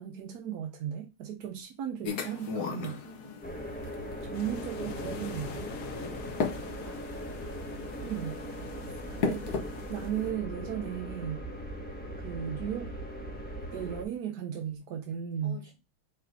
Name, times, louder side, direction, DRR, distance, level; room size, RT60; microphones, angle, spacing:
voice 1, 0.0-3.0 4.2-5.7 8.0-8.4 9.2-9.4 9.9-11.4 12.2-12.9 13.7-15.6, right 9 dB, 65° right, 1.0 m, -36 dB
sound 1, 2.0-10.3, left 5 dB, 55° left, 1.4 m, -38 dB
voice 2, 3.0-3.7 6.1-7.0 8.5-9.6 10.7-10.9 15.4-15.7, equal, 40° right, 2.4 m, -51 dB
sound 2, 3.4-14.0, equal, 5° left, 1.2 m, -40 dB
sound 3, 4.3-10.1, left 7 dB, 75° left, 0.7 m, -46 dB
5.0 x 4.2 x 4.5 m
omnidirectional pair, 2.3 m